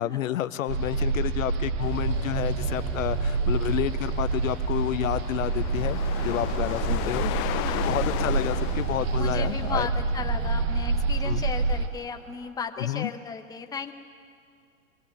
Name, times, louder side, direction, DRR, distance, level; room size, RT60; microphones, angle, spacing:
voice 1, 0.0-7.3 7.9-9.9 11.3-11.4 12.8-13.1, left 12 dB, 70° left, 13 dB, 0.8 m, -30 dB
sound 1, 0.7-11.9, right 4 dB, 45° right, 1.2 m, -27 dB
sound 2, 1.8-9.9, left 15 dB, 30° left, 0.6 m, -36 dB
Mechanical fan, 6.1-12.5, right 3 dB, 25° right, 2.4 m, -46 dB
voice 2, 7.7-8.0 9.2-13.9, left 5 dB, 10° left, 5 dB, 0.9 m, -35 dB
21.5 x 16.5 x 8.1 m, 2.3 s
hypercardioid pair, 110°, 42 cm